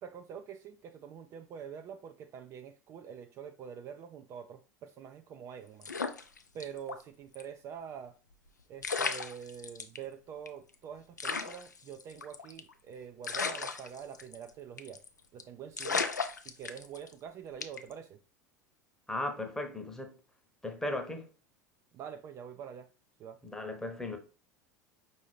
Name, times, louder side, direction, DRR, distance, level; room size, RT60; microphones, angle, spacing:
voice 1, 0.0-5.9 6.5-8.1 8.7-15.0 15.3-16.1 16.4-18.2 21.9-22.9 23.2-23.4, right 8 dB, 35° right, 0.3 m, -45 dB
sound 1, 5.8-7.0 7.3-7.4 8.5-8.6 8.8-10.0 10.5-10.6 10.7-10.8 11.2-12.7 13.2-14.5 14.8-15.1 15.4-15.5 15.8-17.1 17.6-17.9, left 5 dB, 80° left, 0.4 m, -35 dB
voice 2, 19.1-20.1 20.6-21.3 23.4-24.2, left 1 dB, 5° left, 0.9 m, -36 dB
5.3 x 2.7 x 3.3 m
figure-of-eight pair, 75°, 9 cm